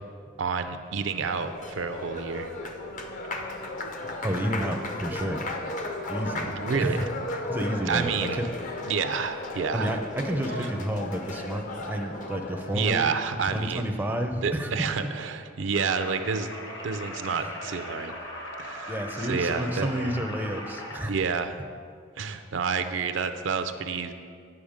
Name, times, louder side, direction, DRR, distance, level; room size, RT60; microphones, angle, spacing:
voice 1, 0.4-2.5 6.5-7.0 7.9-8.4 8.8-10.0 10.6-10.7 12.7-13.9 14.4-16.5 16.8-18.1 18.6-20.2 21.0-21.6 22.2-24.1, right 5 dB, 70° right, 9 dB, 0.5 m, -29 dB
Applause, 1.0-12.9, left 2 dB, 40° left, 0.7 m, -35 dB
voice 2, 4.2-5.5 6.1-6.5 6.8-7.0 7.3-8.4 9.7-13.0 13.5-14.7 18.9-21.1, equal, 10° right, 3 dB, 0.5 m, -30 dB
sound 1, 15.7-21.0, left 1 dB, 65° left, 1.3 m, -39 dB
8.7 x 5.8 x 5.0 m, 2.1 s
head